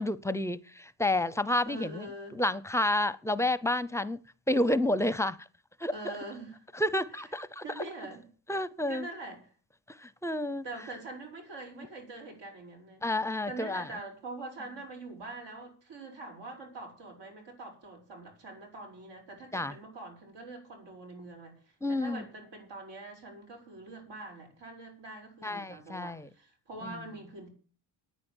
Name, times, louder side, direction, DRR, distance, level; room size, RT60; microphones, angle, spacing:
voice 1, 0.0-4.2 4.5-5.5 5.8-6.1 6.7-7.9 8.5-9.1 9.9-10.6 13.0-13.9 19.5-19.7 21.8-22.2 25.4-26.3 26.8-27.0, left 1 dB, 5° left, 0.6 m, -30 dB
voice 2, 1.6-2.4 5.9-6.6 7.1-7.3 7.6-8.3 8.9-9.4 10.6-13.0 13.5-21.6 21.9-27.5, right 2 dB, 80° right, 6.6 m, -44 dB
9.8 x 9.5 x 8.9 m
cardioid pair, 130°, 43 cm